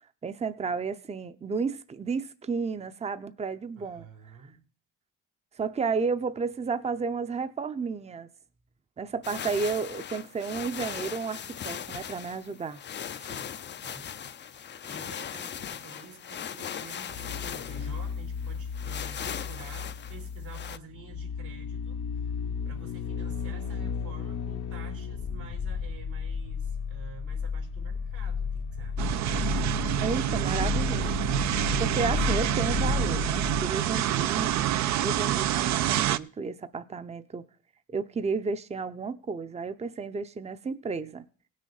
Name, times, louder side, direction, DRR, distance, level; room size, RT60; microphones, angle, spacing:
voice 1, 0.2-4.1 5.6-8.3 9.0-12.8 30.0-31.1 31.8-37.4 37.9-41.2, right 5 dB, 20° right, 0.6 m, -32 dB
voice 2, 3.8-4.6 13.2-22.1 22.6-29.1 33.8-34.2, right 5 dB, 85° right, 3.3 m, -50 dB
sound 1, 9.2-20.8, left 8 dB, 35° left, 0.5 m, -39 dB
sound 2, 17.1-34.6 34.9-35.0, left 6 dB, 70° left, 1.1 m, -33 dB
sound 3, 29.0-36.2, right 12 dB, 65° right, 0.5 m, -27 dB
17.5 x 6.4 x 3.9 m
cardioid pair, 90°, 30 cm